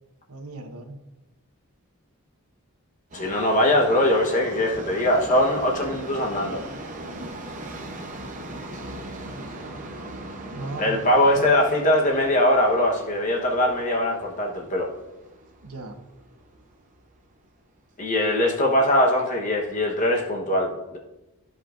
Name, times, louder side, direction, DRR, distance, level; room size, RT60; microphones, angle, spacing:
voice 1, 0.3-1.0 8.2-8.6 10.5-11.6 15.6-16.0, right 2 dB, 85° right, 5 dB, 1.0 m, -37 dB
voice 2, 3.1-6.6 10.8-14.9 18.0-21.0, left 1 dB, 35° left, 0 dB, 1.1 m, -21 dB
Subway metro underground, 3.1-17.2 17.5-17.6 18.5-18.6 18.9-19.0 19.6-19.7, right 1 dB, 35° right, 0.8 m, -39 dB
13.5 x 5.3 x 2.6 m, 1.0 s
head